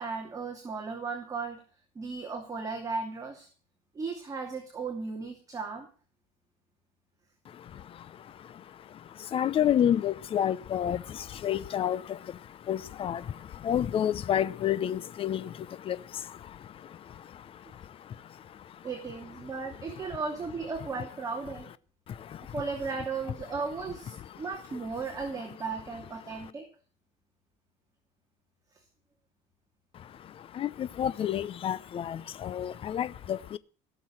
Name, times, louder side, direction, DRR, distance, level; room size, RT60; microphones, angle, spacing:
voice 1, 0.0-1.6 1.9-3.5 3.9-5.9 17.7-17.8 18.8-21.7 22.5-26.7, right 4 dB, 25° right, 2.7 m, -36 dB
voice 2, 7.4-18.9 19.4-20.1 22.1-22.6 24.1-24.5 25.0-25.1 26.2-26.5 29.9-33.6, left 10 dB, 40° left, 0.8 m, -32 dB
17.0 x 7.0 x 7.5 m
cardioid pair, 130°, 15 cm